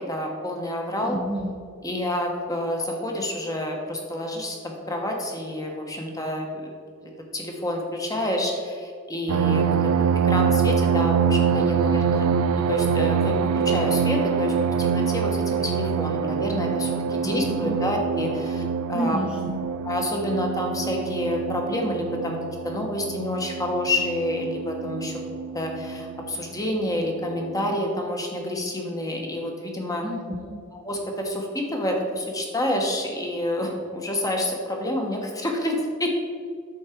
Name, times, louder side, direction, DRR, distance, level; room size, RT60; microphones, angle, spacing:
voice 1, 0.1-1.2 1.8-6.5 7.3-9.8 10.2-12.3 12.7-18.6 18.9-19.2 19.8-22.4 22.6-25.2 25.5-30.0 30.7-36.2, left 1 dB, 15° left, 1 dB, 1.2 m, -28 dB
voice 2, 1.0-1.5 17.2-17.8 18.9-19.6 30.0-30.6, equal, 5° right, -2 dB, 0.6 m, -30 dB
sound 1, 9.3-26.3 27.0-27.1 27.5-27.7, right 6 dB, 85° right, 0.4 m, -25 dB
8.6 x 6.4 x 4.5 m, 2.1 s
head